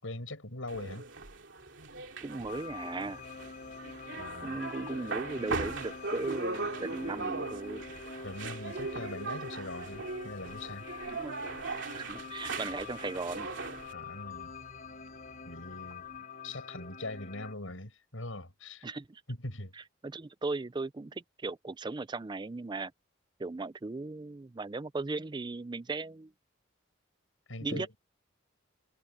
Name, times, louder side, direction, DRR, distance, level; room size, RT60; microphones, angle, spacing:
voice 1, 0.0-1.1 4.2-4.6 8.2-10.9 13.9-14.5 15.4-16.1 16.4-18.9 19.3-19.8 27.5-28.0, left 2 dB, 80° left, 6.3 m, -41 dB
sound 1, 0.7-13.9, right 3 dB, 65° right, 3.0 m, -39 dB
sound 2, 1.6-16.2, equal, 15° left, 6.5 m, -62 dB
voice 2, 2.2-3.2 4.4-7.9 11.1-11.4 11.9-13.5 18.8-19.2 20.0-22.9 23.4-26.3 27.6-27.9, right 3 dB, 20° right, 0.4 m, -37 dB
sound 3, 2.5-17.5, left 5 dB, 45° left, 4.5 m, -45 dB
head